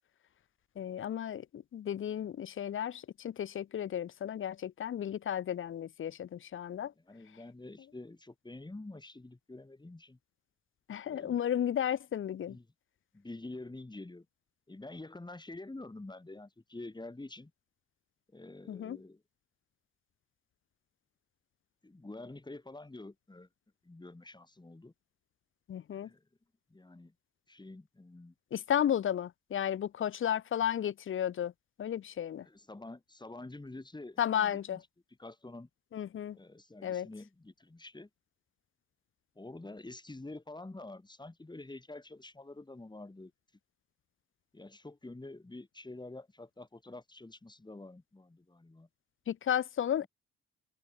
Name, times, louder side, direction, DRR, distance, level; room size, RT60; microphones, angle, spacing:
voice 1, 0.8-6.9 10.9-12.6 18.7-19.0 25.7-26.1 28.5-31.5 31.8-32.5 34.2-34.8 35.9-36.4 36.8-37.1 49.3-50.1, left 10 dB, 45° left, 0.6 m, -33 dB
voice 2, 7.0-10.2 11.1-11.4 12.5-12.6 13.1-14.3 14.7-17.5 18.3-19.2 21.8-23.5 23.8-24.9 25.9-26.2 26.7-27.1 27.5-28.3 32.4-34.8 35.2-35.7 36.3-38.1 39.4-43.3 44.5-48.9 50.0-50.1, left 2 dB, 15° left, 5.5 m, -47 dB
cardioid pair, 90°, 30 cm